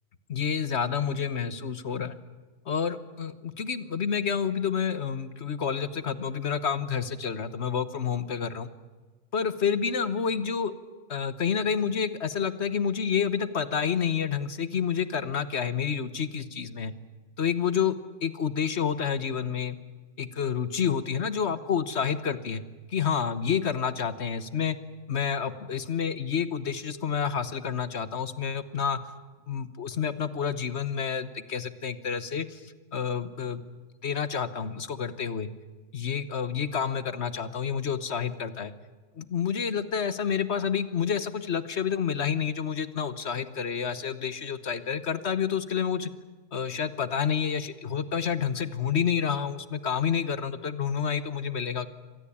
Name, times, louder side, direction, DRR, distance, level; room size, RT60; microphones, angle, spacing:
voice 1, 0.3-2.2 2.7-8.7 9.3-10.7 11.1-16.9 17.4-17.9 18.2-19.8 20.2-22.6 22.9-24.8 25.1-29.0 29.5-32.6 32.9-33.6 34.0-35.5 35.9-38.7 39.2-46.1 46.5-51.9, left 7 dB, 55° left, 14 dB, 1.4 m, -29 dB
25.5 x 19.0 x 8.6 m, 1.3 s
omnidirectional pair, 1.5 m